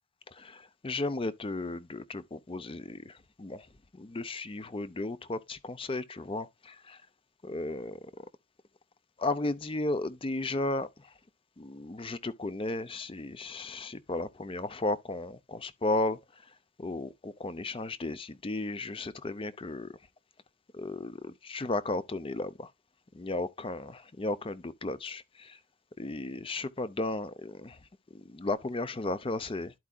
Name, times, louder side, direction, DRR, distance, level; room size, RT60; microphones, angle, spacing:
voice 1, 0.3-3.7 3.9-7.0 7.4-8.3 9.2-11.1 11.6-16.2 16.8-19.9 20.7-22.7 23.1-25.6 26.0-27.8 28.1-29.7, left 2 dB, 25° left, 0.5 m, -34 dB
12.5 x 4.7 x 2.3 m
head